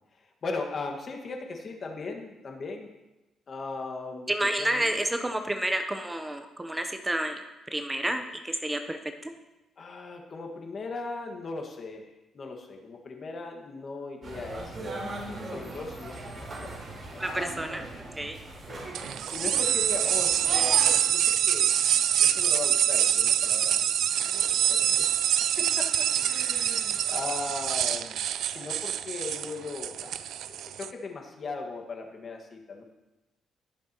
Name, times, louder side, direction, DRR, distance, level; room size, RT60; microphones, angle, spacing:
voice 1, 0.1-2.9 3.5-5.0 9.8-14.8 15.0-17.2 18.7-18.8 19.3-21.7 22.2-23.9 24.3-25.1 25.6-28.2 28.5-30.2 30.5-32.8, left 3 dB, 45° left, 3 dB, 1.8 m, -38 dB
voice 2, 4.3-7.4 7.7-9.3 17.2-17.9 18.2-18.4, right 1 dB, 15° right, 6 dB, 0.8 m, -30 dB
sound 1, 14.2-20.9, right 2 dB, 45° right, 4.1 m, -39 dB
sound 2, 18.9-30.9, right 10 dB, 75° right, 0.4 m, -25 dB
20.0 x 7.2 x 3.0 m, 1.0 s
cardioid pair, 90°, 0 cm